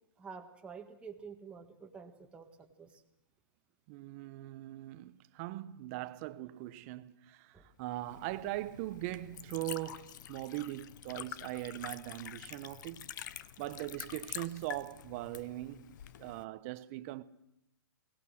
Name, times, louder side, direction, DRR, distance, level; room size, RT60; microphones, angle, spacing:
voice 1, 0.2-3.0 7.5-7.7, right 6 dB, 10° right, 1.6 m, -49 dB
voice 2, 3.9-17.2, right 17 dB, 40° right, 0.9 m, -41 dB
Liquid, 7.9-16.4, left 11 dB, 55° left, 0.8 m, -47 dB
22.0 x 18.5 x 6.4 m
hypercardioid pair, 145°, 12 cm